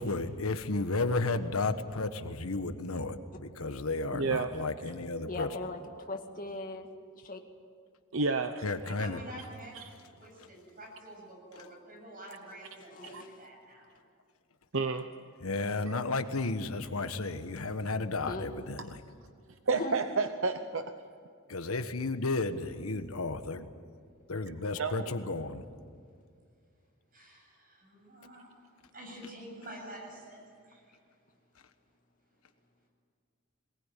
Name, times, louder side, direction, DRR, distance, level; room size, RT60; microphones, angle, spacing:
voice 1, 0.0-5.5 8.6-9.2 10.4-10.5 15.4-19.0 21.5-23.7 24.3-25.6, left 3 dB, 90° left, 9 dB, 1.4 m, -33 dB
voice 2, 4.1-4.6 8.1-9.0 9.7-9.8 13.1-13.2 14.7-15.1 19.7-20.9 24.5-25.1, right 4 dB, 65° right, 8 dB, 0.9 m, -31 dB
voice 3, 5.3-5.8 6.1-6.9 7.1-7.4 12.9-13.4 18.2-18.5 19.7-19.9, left 2 dB, 40° left, 3 dB, 2.1 m, -39 dB
voice 4, 9.0-9.9 10.2-14.0 27.1-28.5 28.9-31.0, right 1 dB, 40° right, 0 dB, 7.8 m, -48 dB
22.0 x 19.5 x 9.3 m, 2.2 s
head